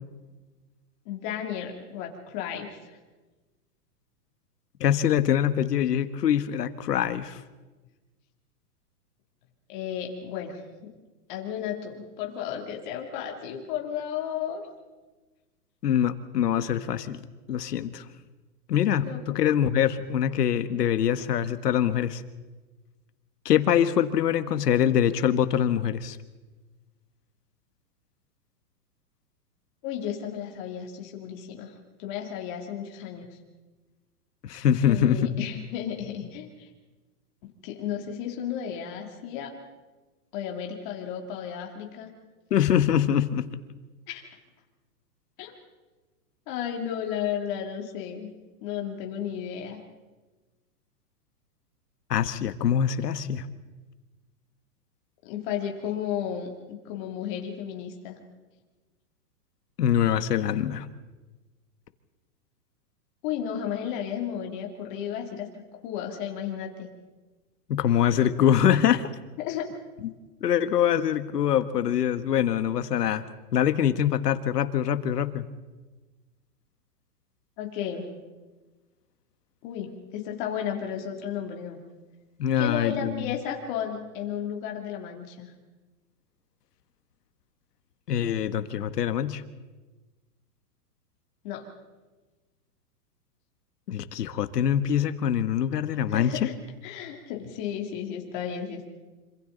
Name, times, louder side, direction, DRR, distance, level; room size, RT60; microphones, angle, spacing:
voice 1, 1.0-2.8 9.7-10.9 11.3-14.6 19.0-19.2 29.8-31.7 32.0-33.3 34.8-36.7 37.6-39.5 40.3-42.1 44.1-44.2 45.4-45.5 46.5-48.3 48.6-49.8 55.2-58.2 63.2-65.5 65.8-66.9 69.4-69.7 77.6-78.1 79.6-81.8 82.6-85.5 91.4-91.7 96.1-96.6 96.8-98.9, left 9 dB, 30° left, 1 dB, 2.9 m, -33 dB
voice 2, 4.8-7.4 15.8-18.0 18.7-22.2 23.4-26.2 34.4-35.5 42.5-43.5 52.1-53.5 59.8-60.9 67.7-69.1 70.0-70.1 70.4-73.2 73.5-75.5 82.4-83.3 88.1-89.4 93.9-96.5, left 9 dB, 80° left, 11 dB, 1.6 m, -24 dB
26.5 x 26.0 x 4.0 m, 1.2 s
hypercardioid pair, 170°, 47 cm